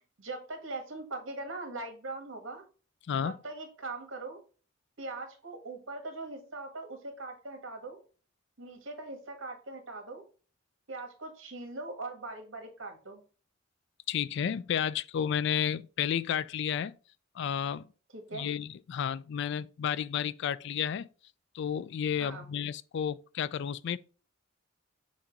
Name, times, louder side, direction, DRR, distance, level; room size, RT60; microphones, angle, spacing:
voice 1, 0.2-2.6 3.2-4.4 5.0-8.0 8.6-10.3 10.9-13.2 18.1-18.5 22.2-22.5, right 2 dB, 75° right, 1.6 m, -41 dB
voice 2, 14.1-17.0 17.4-17.9 18.3-21.1 21.5-24.0, left 8 dB, 60° left, 0.3 m, -32 dB
7.1 x 2.6 x 5.2 m
head